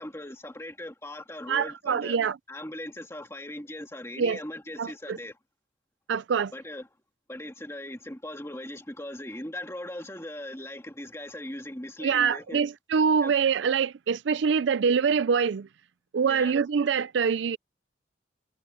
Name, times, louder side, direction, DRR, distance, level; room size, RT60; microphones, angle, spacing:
voice 1, 0.0-2.2 2.5-5.4 6.5-6.9 7.3-12.6 13.2-13.3 16.3-16.6, left 1 dB, 15° left, 2.2 m, -39 dB
voice 2, 1.5-2.4 4.2-4.4 4.8-5.2 6.1-6.5 12.0-15.7 16.1-17.6, right 6 dB, 70° right, 0.4 m, -25 dB
head